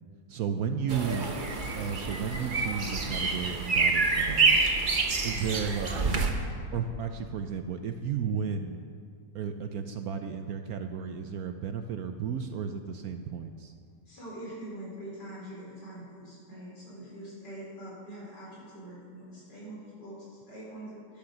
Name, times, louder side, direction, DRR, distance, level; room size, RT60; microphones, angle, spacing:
voice 1, 0.3-1.3 1.7-4.6 5.2-6.2 6.7-8.8 9.3-13.7, right 7 dB, 70° right, 7 dB, 1.0 m, -33 dB
sound 1, 0.9-6.3, right 4 dB, 35° right, 1.0 m, -27 dB
voice 2, 14.1-21.2, right 1 dB, 70° left, -6 dB, 5.2 m, -44 dB
11.5 x 10.5 x 6.6 m, 2.2 s
omnidirectional pair, 1.9 m